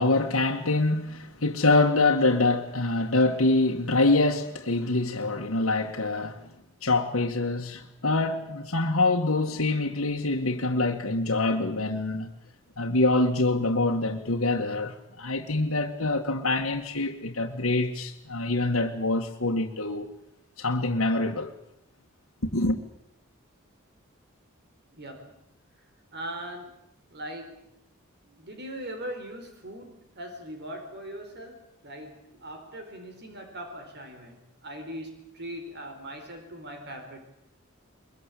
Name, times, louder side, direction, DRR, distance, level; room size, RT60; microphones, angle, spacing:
voice 1, 0.0-6.4 6.8-12.3 12.8-20.1 20.6-21.5 22.4-22.8, left 2 dB, 85° left, 2.0 m, -25 dB
voice 2, 24.9-25.4 26.1-26.8 27.1-27.7 28.2-37.2, right 1 dB, 55° right, 4.4 m, -40 dB
23.0 x 22.5 x 8.6 m
head